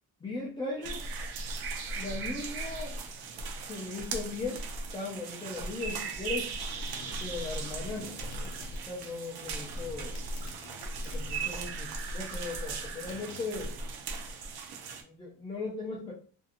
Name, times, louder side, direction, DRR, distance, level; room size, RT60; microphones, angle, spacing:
voice 1, 0.2-1.1 1.9-2.9 3.7-4.6 4.9-6.6 7.2-10.2 11.0-13.8 15.0-16.1, left 3 dB, 15° left, -3 dB, 0.3 m, -38 dB
sound 1, 0.8-15.0, right 3 dB, 75° right, 0.6 m, -37 dB
sound 2, 5.4-11.9 12.2-14.1, left 6 dB, 80° left, 0.5 m, -51 dB
2.6 x 2.6 x 2.4 m, 0.43 s
cardioid pair, 165°, 38 cm